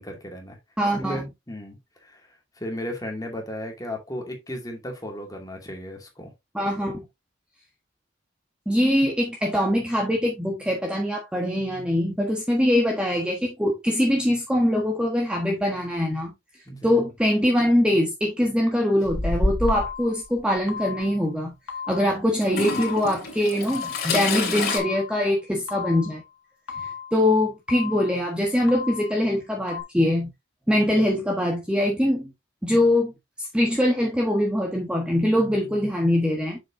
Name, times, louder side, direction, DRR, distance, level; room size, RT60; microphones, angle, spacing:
voice 1, 0.0-0.6 0.9-6.3 16.7-16.9, equal, 20° left, 2.3 m, -35 dB
voice 2, 0.8-1.2 6.5-7.0 8.7-16.3 16.7-21.5 21.9-26.2 27.1-30.3 30.7-32.3 32.6-33.1 33.4-36.6, left 1 dB, 5° right, 1.3 m, -23 dB
Toilet flush / Trickle dribble, 19.1-20.0 21.0-21.1 22.4-24.8, left 3 dB, 50° left, 2.6 m, -27 dB
sound 1, 19.7-20.2 20.7-21.2 21.7-22.2 22.7-23.2 23.7-24.3 24.7-25.3 25.7-26.2 26.7-27.3 27.7-28.3 28.7-29.3 29.7-29.8, left 6 dB, 70° left, 1.5 m, -36 dB
7.4 x 6.2 x 2.7 m
head